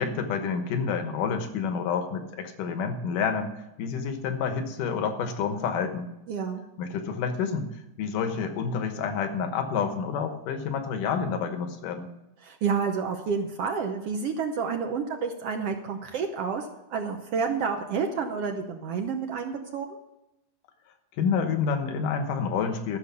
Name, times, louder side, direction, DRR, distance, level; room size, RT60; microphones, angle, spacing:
voice 1, 0.0-3.5 3.8-6.1 6.8-7.7 8.0-12.1 21.2-23.0, left 6 dB, 85° left, 7 dB, 2.8 m, -28 dB
voice 2, 6.3-6.6 12.4-20.0, right 5 dB, 70° right, 4 dB, 1.6 m, -29 dB
13.5 x 6.5 x 7.0 m, 0.91 s
omnidirectional pair, 3.7 m